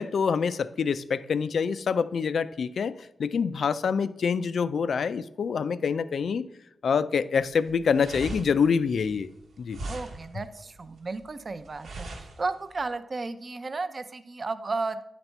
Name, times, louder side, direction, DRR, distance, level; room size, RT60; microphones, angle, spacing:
voice 1, 0.0-2.9 3.2-6.5 6.8-9.3 9.6-9.8, left 6 dB, 75° left, 15 dB, 0.3 m, -26 dB
sound 1, 7.4-12.9, right 2 dB, 90° right, 1.1 m, -41 dB
voice 2, 9.9-15.0, right 3 dB, 40° right, 11 dB, 0.5 m, -33 dB
9.7 x 4.1 x 4.4 m, 0.81 s
wide cardioid pair, 100°, 0 cm